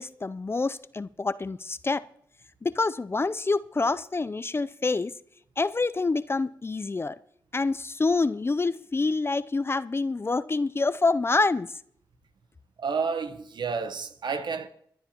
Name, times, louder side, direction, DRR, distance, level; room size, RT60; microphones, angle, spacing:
voice 1, 0.0-2.0 2.6-5.1 5.6-7.2 7.5-11.7, left 3 dB, 30° left, 0.4 m, -27 dB
voice 2, 12.8-14.7, right 5 dB, 65° right, 1.0 m, -30 dB
28.5 x 11.0 x 2.9 m
cardioid pair, 50°, 8 cm